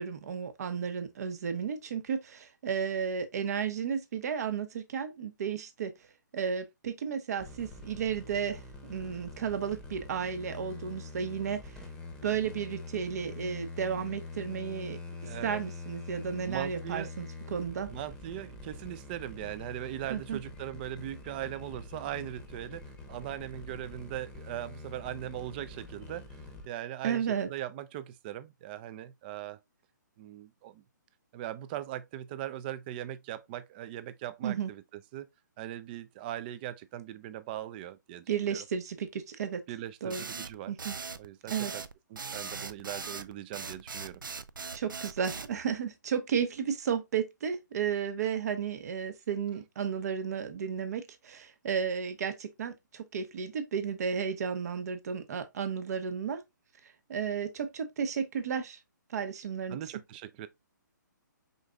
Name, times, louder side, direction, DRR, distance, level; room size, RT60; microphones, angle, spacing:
voice 1, 0.0-5.9 6.3-11.8 12.2-15.0 15.4-17.9 20.1-20.4 27.0-27.5 34.4-34.7 38.3-39.6 40.0-40.3 40.7-40.9 41.5-41.7 44.7-56.4 57.1-58.8 59.1-59.8, right 7 dB, 55° right, 1.0 m, -33 dB
sound 1, 7.4-26.7, left 3 dB, 5° left, 0.9 m, -45 dB
voice 2, 15.2-15.6 16.5-17.1 17.9-26.4 26.7-29.6 30.2-30.8 31.3-35.3 35.6-38.6 39.7-40.8 41.2-41.8 42.1-44.2 59.7-60.5, right 12 dB, 30° right, 0.4 m, -40 dB
sound 2, 40.1-45.5, right 5 dB, 90° right, 0.4 m, -40 dB
5.0 x 3.9 x 2.3 m
hypercardioid pair, 140°, 11 cm